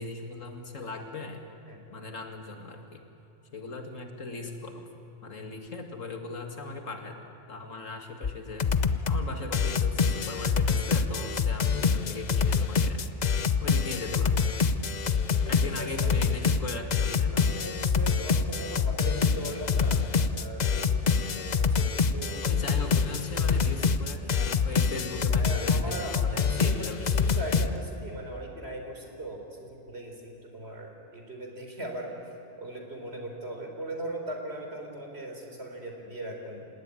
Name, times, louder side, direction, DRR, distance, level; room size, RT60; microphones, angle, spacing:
voice 1, 0.0-1.4 1.9-3.0 3.5-4.9 5.2-7.2 7.5-8.7 9.1-13.3 13.6-14.5 15.5-17.5 22.4-27.3, left 3 dB, 90° left, 4 dB, 2.7 m, -39 dB
sound 1, 8.2-8.3 8.6-9.2 9.5-27.7, left 5 dB, 40° left, 0.8 m, -26 dB
voice 2, 15.7-16.2 17.3-22.4 25.3-32.1 32.6-36.6, right 1 dB, 55° right, 2 dB, 4.2 m, -39 dB
27.5 x 17.5 x 10.0 m, 2.9 s
omnidirectional pair, 1.3 m